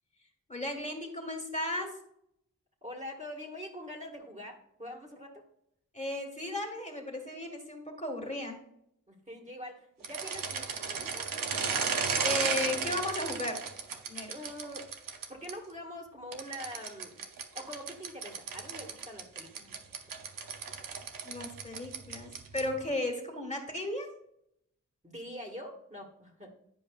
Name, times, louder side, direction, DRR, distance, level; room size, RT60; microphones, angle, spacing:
voice 1, 0.5-2.0 5.9-8.6 12.2-13.6 14.1-14.3 21.2-24.1, left 1 dB, 20° left, 2 dB, 1.7 m, -35 dB
voice 2, 2.8-5.5 9.1-11.7 14.3-14.9 15.3-17.2 17.5-19.7 25.0-26.6, equal, 20° right, 0 dB, 1.8 m, -44 dB
sound 1, 10.0-15.5 16.3-22.8, right 5 dB, 85° right, 0.8 m, -35 dB
10.0 x 5.1 x 2.4 m, 0.73 s
cardioid pair, 45°, 32 cm